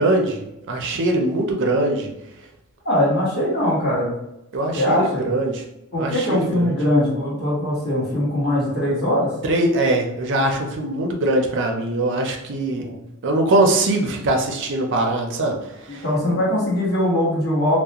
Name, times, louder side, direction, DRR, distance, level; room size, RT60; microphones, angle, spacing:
voice 1, 0.0-2.1 4.5-5.6 6.0-6.8 9.4-12.9 13.2-16.0, right 2 dB, 55° right, 2 dB, 0.5 m, -22 dB
voice 2, 2.8-4.1 4.8-5.2 5.9-9.3 12.7-13.0 15.9-17.8, left 1 dB, 45° left, -8 dB, 1.1 m, -21 dB
2.4 x 2.1 x 2.8 m, 0.90 s
head